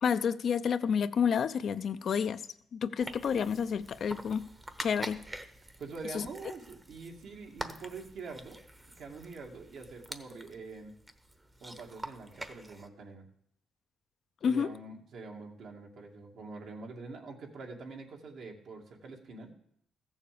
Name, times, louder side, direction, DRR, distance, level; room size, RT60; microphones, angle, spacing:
voice 1, 0.0-2.4 2.7-4.4 4.8-5.2 6.1-6.3 14.4-14.7, left 7 dB, 55° left, 11 dB, 0.6 m, -29 dB
sound 1, 3.0-12.9, right 1 dB, 15° right, 1.0 m, -46 dB
voice 2, 5.8-8.6 9.0-10.9 11.6-13.3 14.4-19.5, right 3 dB, 70° right, 1 dB, 2.3 m, -45 dB
14.5 x 7.2 x 6.9 m, 0.69 s
cardioid pair, 90°, 0 cm